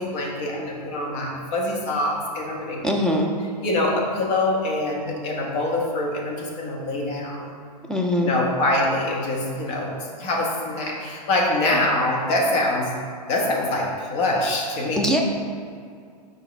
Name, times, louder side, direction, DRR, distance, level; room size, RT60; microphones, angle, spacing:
voice 1, 0.0-2.8 3.6-7.5 8.2-12.9 13.3-15.2, left 1 dB, 40° left, -2 dB, 1.4 m, -24 dB
voice 2, 2.8-3.3 7.8-8.4 15.0-15.2, left 1 dB, 5° left, 0 dB, 0.5 m, -22 dB
7.0 x 4.8 x 3.3 m, 2.3 s
hypercardioid pair, 125°, 21 cm